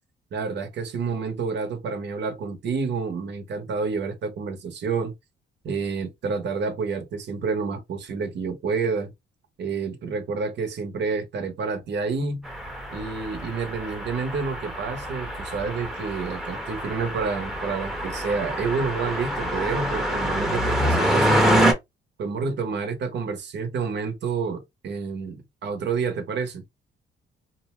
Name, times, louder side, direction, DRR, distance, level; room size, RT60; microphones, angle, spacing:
voice 1, 0.3-5.1 5.6-9.1 9.6-12.5 12.9-21.7 22.2-26.6, right 5 dB, 60° right, 0.9 m, -29 dB
sound 1, 12.4-21.7, equal, ahead, 0.8 m, -26 dB
2.7 x 2.0 x 3.0 m
cardioid pair, 90°, 20 cm